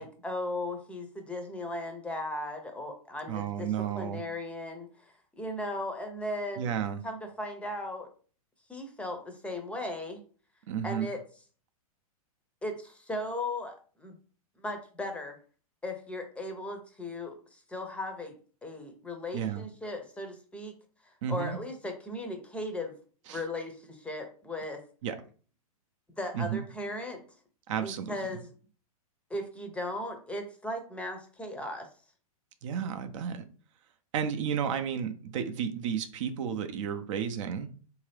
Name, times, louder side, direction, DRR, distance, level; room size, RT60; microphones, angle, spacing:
voice 1, 0.0-3.7 4.0-6.7 7.0-8.1 8.7-10.2 10.8-11.2 12.6-14.2 14.6-15.4 15.8-20.7 21.3-22.9 23.3-24.8 26.2-27.2 27.8-28.5 29.3-31.9, left 1 dB, 5° left, 5 dB, 0.6 m, -37 dB
voice 2, 3.3-4.2 6.6-7.0 10.7-11.1 19.3-19.6 21.2-21.6 23.3-23.4 25.0-25.2 26.3-26.6 27.7-28.2 32.6-33.4 34.1-37.7, right 8 dB, 55° right, 9 dB, 0.6 m, -32 dB
3.6 x 2.8 x 3.3 m, 0.40 s
hypercardioid pair, 130°, 19 cm